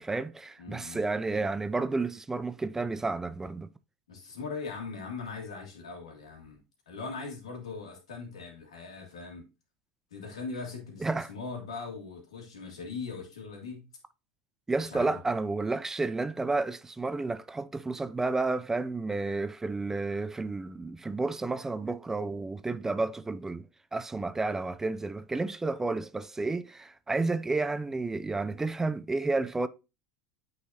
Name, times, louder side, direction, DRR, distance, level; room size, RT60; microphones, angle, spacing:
voice 1, 0.0-3.7 11.0-11.3 14.7-23.7 23.9-29.7, right 3 dB, 15° right, 0.4 m, -31 dB
voice 2, 0.6-1.0 4.1-6.6 6.9-9.4 10.1-13.9 14.8-15.2, left 4 dB, 90° left, 1.9 m, -40 dB
8.5 x 4.0 x 2.8 m
hypercardioid pair, 90°, 3 cm